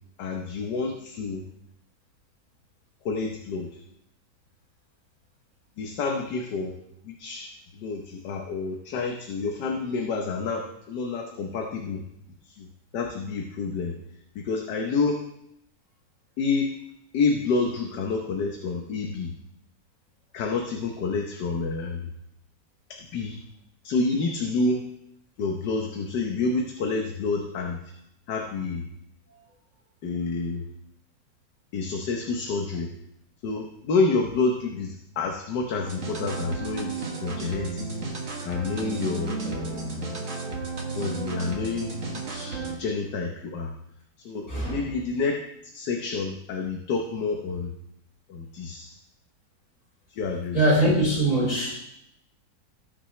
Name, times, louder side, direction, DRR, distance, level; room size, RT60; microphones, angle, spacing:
voice 1, 0.2-1.4 3.0-3.8 5.8-6.7 7.0-7.5 7.7-12.0 12.4-12.7 12.9-14.0 14.3-15.2 16.4-16.8 17.1-19.3 20.3-22.1 22.9-23.4 23.8-24.8 25.4-27.9 28.3-28.8 30.0-30.6 31.7-32.9 33.4-36.9 37.2-38.0 38.4-40.1 40.9-43.7 44.2-45.4 45.6-47.7 48.3-48.9 50.1-50.6, left 4 dB, 75° left, 2 dB, 1.6 m, -28 dB
sound 1, 35.8-42.8, right 4 dB, 50° right, 1.8 m, -33 dB
voice 2, 44.5-44.8 50.5-51.8, right 1 dB, 55° left, -7 dB, 4.3 m, -22 dB
18.0 x 6.3 x 3.2 m, 0.80 s
omnidirectional pair, 1.9 m